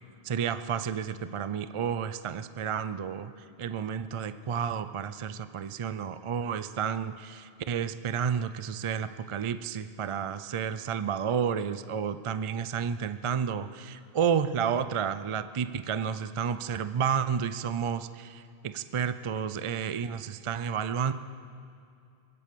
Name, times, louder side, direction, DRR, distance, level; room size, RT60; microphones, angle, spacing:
voice 1, 0.2-3.3 3.6-21.1, right 7 dB, 50° right, 12 dB, 0.3 m, -31 dB
22.5 x 8.4 x 6.8 m, 2.5 s
omnidirectional pair, 1.1 m